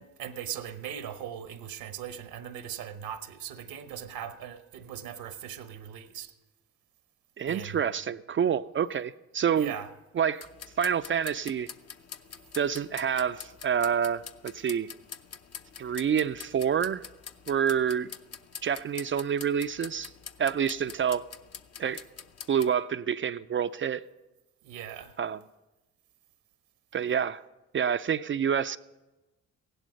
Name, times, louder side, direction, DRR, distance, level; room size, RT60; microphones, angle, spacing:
voice 1, 0.0-6.3 7.5-7.8 9.6-9.9 24.6-25.2, right 9 dB, 80° right, 1.0 m, -39 dB
voice 2, 7.4-9.7 10.1-10.5 10.8-11.7 12.5-14.9 15.8-17.1 17.5-18.1 18.6-20.1 20.4-21.2 21.8-22.0 22.5-24.0 25.2-25.4 26.9-27.4 27.7-28.8, right 8 dB, 35° right, 0.4 m, -27 dB
sound 1, 10.4-22.7, left 7 dB, 45° left, 0.7 m, -46 dB
16.0 x 11.0 x 5.2 m
supercardioid pair, 60°, 35 cm